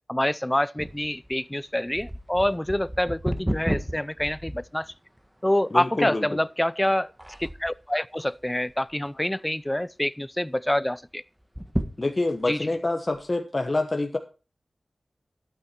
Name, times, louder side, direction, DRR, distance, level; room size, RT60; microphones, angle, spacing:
voice 1, 0.1-4.9 5.4-7.1 7.4-11.2 12.5-12.7, left 1 dB, 15° left, 0.4 m, -26 dB
sound 1, 0.8-5.3 5.8-5.9 6.6-6.9 7.2-7.9 8.4-9.1 9.4-9.5 9.8-9.9 11.4-12.5 13.1-13.2, equal, 10° right, 1.4 m, -32 dB
voice 2, 5.7-6.3 12.0-14.2, left 2 dB, 40° left, 1.1 m, -26 dB
12.0 x 8.5 x 4.4 m
wide cardioid pair, 60°, 0 cm